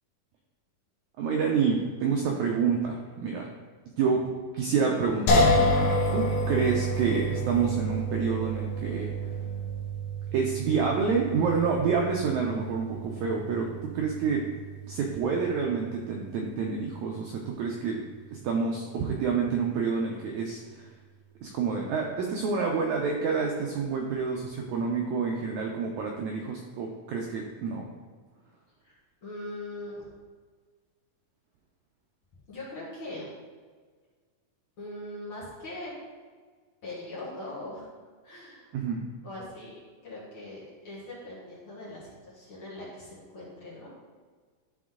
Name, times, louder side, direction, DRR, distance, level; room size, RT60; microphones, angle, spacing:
voice 1, 1.2-3.5 4.0-4.2 4.5-5.7 6.1-9.3 10.3-14.4 14.9-18.0 18.3-20.9 21.4-27.8 38.7-39.0, right 5 dB, 90° right, 0 dB, 1.6 m, -28 dB
sound 1, 5.3-18.3, equal, 70° left, 2.4 m, -30 dB
voice 2, 28.8-30.0 32.5-33.3 34.8-35.9 36.8-37.9 38.2-38.7 39.2-39.7 40.0-43.9, left 1 dB, 45° left, -8 dB, 1.9 m, -41 dB
11.5 x 3.9 x 3.7 m, 1.6 s
omnidirectional pair, 4.2 m